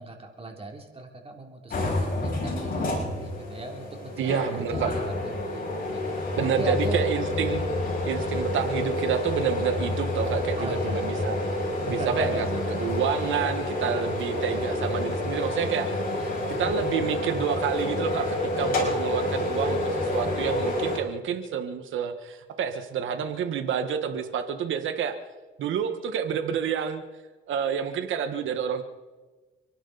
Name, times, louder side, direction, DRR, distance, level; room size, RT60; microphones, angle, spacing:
voice 1, 0.0-4.3 4.7-6.0 6.6-7.0 10.6-11.1 11.8-12.6, right 2 dB, 30° right, 2 dB, 3.1 m, -37 dB
sound 1, 1.7-21.0, left 1 dB, 45° left, 6.1 m, -28 dB
voice 2, 4.2-4.9 6.4-7.6 8.1-11.6 11.9-16.0 16.5-25.2 25.6-27.0 27.5-28.8, right 8 dB, 80° right, 8 dB, 1.5 m, -29 dB
30.0 x 11.5 x 4.1 m, 1.3 s
cardioid pair, 90°, 20 cm